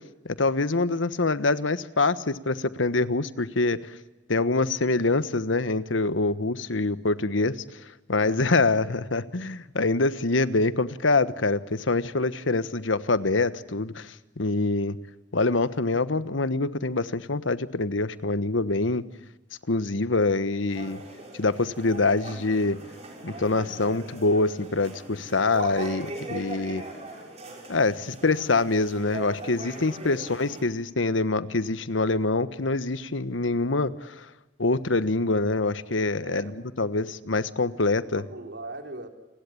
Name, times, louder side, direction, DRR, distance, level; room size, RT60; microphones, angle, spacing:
voice 1, 0.2-3.9 4.3-7.6 8.1-15.0 15.3-19.0 19.7-21.0 21.3-22.8 23.2-26.8 27.7-34.3 34.6-36.5 36.8-38.2, left 3 dB, 90° left, 14 dB, 1.3 m, -25 dB
voice 2, 8.2-8.6 9.0-9.1 14.4-14.7 36.2-37.0 38.0-39.1, right 2 dB, 65° right, 5 dB, 3.4 m, -42 dB
sound 1, 20.7-30.6, right 1 dB, 35° right, 6.7 m, -40 dB
29.5 x 20.5 x 8.6 m, 1.1 s
head